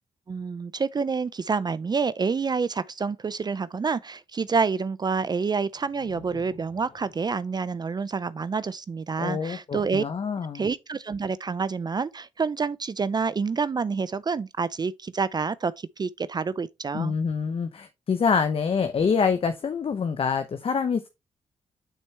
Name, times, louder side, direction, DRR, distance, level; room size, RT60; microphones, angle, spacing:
voice 1, 0.3-10.0 10.5-17.1, right 5 dB, 35° right, 0.4 m, -28 dB
sound 1, 5.7-9.5, left 5 dB, 70° left, 2.9 m, -54 dB
voice 2, 9.2-10.7 16.9-21.1, left 5 dB, 55° left, 0.8 m, -26 dB
9.1 x 4.4 x 3.3 m
supercardioid pair, 50°, 12 cm